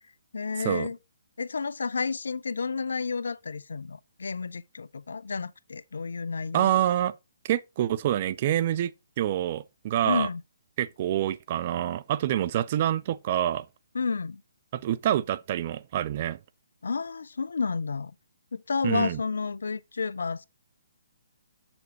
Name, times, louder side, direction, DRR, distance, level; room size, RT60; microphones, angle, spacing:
voice 1, 0.3-1.0 1.4-6.8 10.0-10.4 13.9-14.4 16.8-18.1 18.5-20.5, left 4 dB, 75° left, 0.5 m, -31 dB
voice 2, 6.5-7.1 7.4-8.9 9.2-10.3 10.8-13.7 14.7-16.4 18.8-19.2, right 11 dB, 40° right, 0.4 m, -26 dB
8.1 x 6.9 x 2.9 m
figure-of-eight pair, 140°, 0 cm